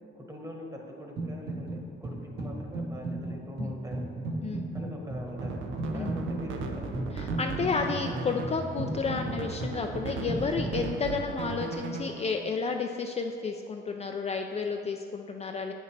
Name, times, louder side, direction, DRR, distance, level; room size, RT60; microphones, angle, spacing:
voice 1, 0.1-4.1 4.7-5.6 5.9-6.9, equal, 15° right, 0 dB, 1.2 m, -43 dB
sound 1, 1.2-10.9, right 2 dB, 55° right, 1.3 m, -35 dB
sound 2, 5.3-12.4, right 5 dB, 75° right, 0.6 m, -38 dB
voice 2, 7.1-15.7, left 5 dB, 30° left, 3 dB, 0.4 m, -31 dB
7.8 x 6.5 x 3.3 m, 2.4 s
cardioid pair, 90°, 20 cm